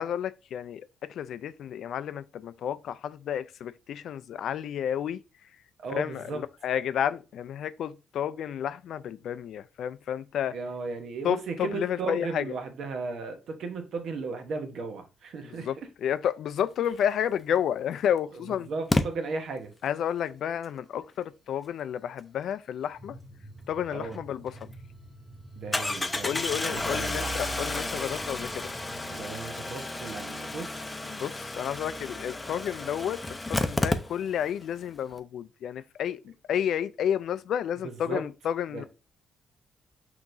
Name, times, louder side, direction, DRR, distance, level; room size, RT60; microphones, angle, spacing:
voice 1, 0.0-5.2 5.9-10.6 11.2-12.4 15.6-18.7 19.8-23.2 23.7-24.7 26.2-28.8 31.1-33.2 33.5-38.8, left 9 dB, 70° left, 0.3 m, -31 dB
voice 2, 5.8-6.4 10.5-15.9 18.5-19.7 23.9-24.2 25.6-27.6 29.1-30.9 37.8-38.2 38.7-38.9, right 4 dB, 65° right, 1.0 m, -36 dB
Engine starting, 17.4-17.5 18.9-19.0 24.1-24.2 24.6-24.7 25.7-34.5 34.8-34.9 35.1-35.2, left 2 dB, 15° left, 0.6 m, -31 dB
sound 1, 23.0-29.2, right 1 dB, 10° right, 2.0 m, -48 dB
6.0 x 2.9 x 2.6 m
cardioid pair, 90°, 0 cm